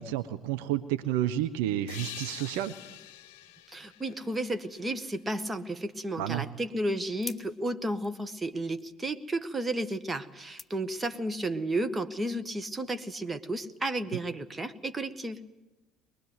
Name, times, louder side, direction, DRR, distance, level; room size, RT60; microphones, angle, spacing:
voice 1, 0.0-2.7 6.2-6.4, right 12 dB, 70° right, 10 dB, 0.9 m, -30 dB
sound 1, 1.9-5.4, left 13 dB, 70° left, 0.8 m, -46 dB
voice 2, 3.7-15.4, right 1 dB, 20° right, 11 dB, 1.7 m, -33 dB
sound 2, 6.9-11.5, left 3 dB, 15° left, 2.0 m, -51 dB
23.0 x 20.0 x 8.1 m, 1.1 s
hypercardioid pair, 60°, 0 cm